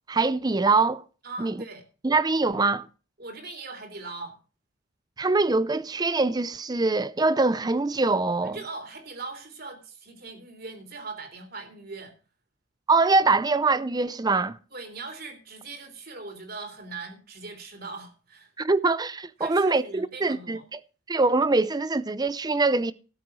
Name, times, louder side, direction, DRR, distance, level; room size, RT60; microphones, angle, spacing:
voice 1, 0.1-1.0 1.4-1.6 2.0-2.9 5.2-8.6 12.9-14.6 18.6-20.8 21.1-22.9, right 3 dB, 20° right, 0.5 m, -23 dB
voice 2, 1.2-1.8 3.2-4.4 8.4-12.1 14.7-18.5 19.4-20.6, right 3 dB, 50° right, 3.3 m, -40 dB
13.5 x 7.7 x 6.2 m
head